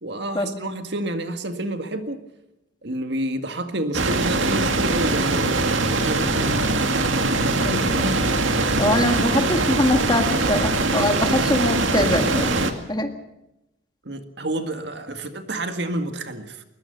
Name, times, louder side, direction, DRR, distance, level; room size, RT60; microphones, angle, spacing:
voice 1, 0.0-2.2 2.8-6.5 14.1-16.6, right 1 dB, 60° right, 7 dB, 1.9 m, -29 dB
sound 1, 3.9-12.7, right 2 dB, 85° right, 2.1 m, -22 dB
voice 2, 7.6-8.2 8.8-12.6 12.9-13.1, left 1 dB, 20° left, 6 dB, 1.9 m, -23 dB
21.5 x 20.5 x 6.7 m, 0.88 s
head